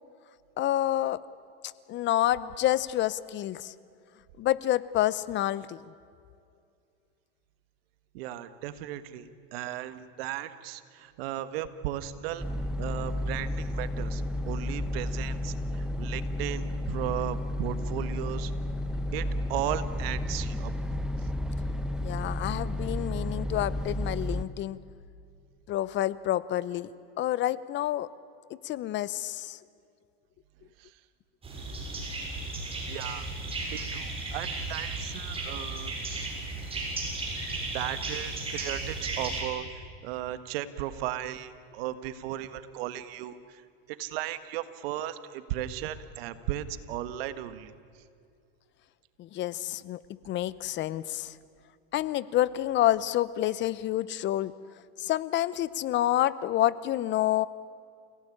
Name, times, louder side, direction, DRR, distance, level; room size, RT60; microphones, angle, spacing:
voice 1, 0.6-1.2 1.6-3.7 4.4-5.8 22.0-24.8 25.7-26.9 27.2-28.1 28.6-29.6 49.2-50.0 50.2-51.3 51.9-54.5 55.0-57.5, left 13 dB, 35° left, 18 dB, 0.8 m, -28 dB
voice 2, 8.1-12.4 12.8-18.5 19.1-20.7 30.8-30.9 32.9-33.3 33.6-36.3 37.7-39.6 40.0-43.6 44.0-47.7, right 13 dB, 70° right, 12 dB, 1.6 m, -36 dB
sound 1, 12.4-24.4, left 1 dB, ahead, 1.1 m, -32 dB
sound 2, 31.4-39.4, right 2 dB, 20° right, 7.1 m, -35 dB
29.5 x 17.0 x 10.0 m, 2.4 s
supercardioid pair, 125°, 31 cm